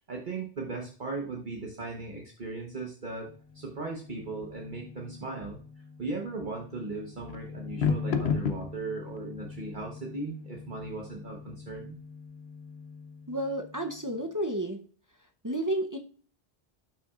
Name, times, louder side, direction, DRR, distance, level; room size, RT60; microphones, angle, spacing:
voice 1, 0.1-5.6 6.0-12.0, right 3 dB, 50° right, 0 dB, 1.2 m, -37 dB
sound 1, 3.3-14.1, left 5 dB, 85° left, 1.0 m, -37 dB
voice 2, 13.3-14.8 15.4-16.0, right 1 dB, 20° right, 3 dB, 0.6 m, -31 dB
12.0 x 5.8 x 2.4 m, 0.43 s
omnidirectional pair, 1.0 m